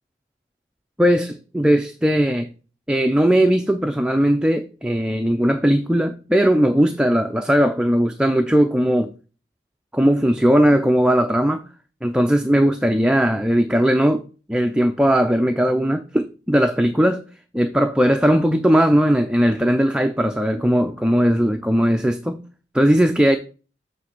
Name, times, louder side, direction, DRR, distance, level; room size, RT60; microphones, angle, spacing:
voice 1, 1.0-2.5 2.9-9.1 9.9-11.6 12.0-17.2 17.5-22.4 22.7-23.4, equal, 5° right, 0.4 m, -18 dB
7.4 x 3.3 x 6.0 m
head